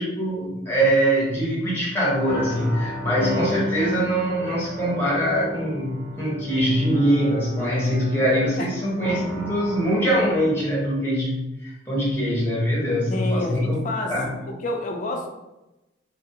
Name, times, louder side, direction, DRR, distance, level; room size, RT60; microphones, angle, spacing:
voice 1, 0.0-14.4, equal, 10° left, -6 dB, 0.9 m, -23 dB
sound 1, 2.2-10.7, equal, 40° right, 0.7 m, -33 dB
voice 2, 13.1-14.1 14.5-15.3, left 2 dB, 40° left, 2 dB, 0.4 m, -29 dB
2.7 x 2.5 x 2.7 m, 0.98 s
head